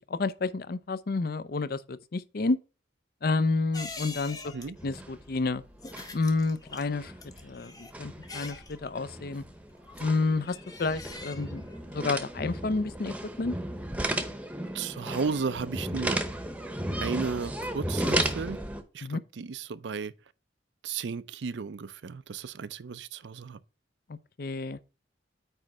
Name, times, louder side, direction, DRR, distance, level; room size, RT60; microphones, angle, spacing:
voice 1, 0.1-2.6 3.2-4.5 4.8-5.6 6.1-7.1 7.4-9.4 10.0-13.6 19.0-19.2 24.4-24.8, left 3 dB, 55° left, 0.5 m, -30 dB
sound 1, 3.7-13.7 14.0-14.1, left 3 dB, 20° left, 0.9 m, -46 dB
sound 2, 4.8-5.5 5.7-6.3 6.7-18.8, right 1 dB, 5° right, 0.8 m, -34 dB
voice 2, 14.7-16.2 17.0-18.6 18.9-20.1 20.8-23.6, right 5 dB, 70° right, 0.5 m, -34 dB
9.0 x 3.2 x 5.9 m
head